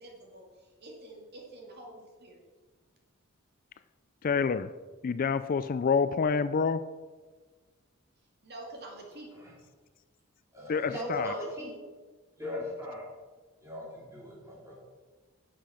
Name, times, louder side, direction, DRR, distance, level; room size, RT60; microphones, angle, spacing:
voice 1, 0.0-2.4 8.4-9.3, right 1 dB, 50° right, 0 dB, 2.5 m, -47 dB
voice 2, 4.2-4.7 5.0-6.8 10.7-11.3, left 5 dB, 40° left, 13 dB, 0.4 m, -27 dB
voice 3, 10.5-11.7 12.4-13.1 13.6-14.7, left 1 dB, 15° right, -5 dB, 3.8 m, -38 dB
10.0 x 7.7 x 6.4 m, 1.3 s
head